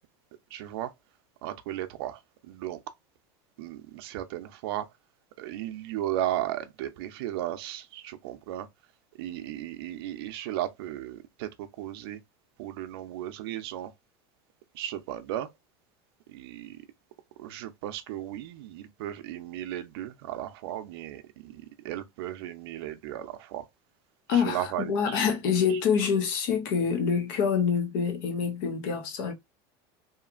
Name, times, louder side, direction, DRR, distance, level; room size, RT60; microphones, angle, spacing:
voice 1, 0.5-0.9 1.4-2.8 3.6-4.9 5.4-8.7 9.2-12.2 12.6-13.9 14.7-15.5 16.3-16.8 17.4-23.7 24.3-25.2 25.7-25.8, right 13 dB, 80° right, 0.5 m, -35 dB
voice 2, 24.3-29.3, left 6 dB, 60° left, 0.9 m, -26 dB
2.9 x 2.4 x 2.3 m
supercardioid pair, 165°, 13 cm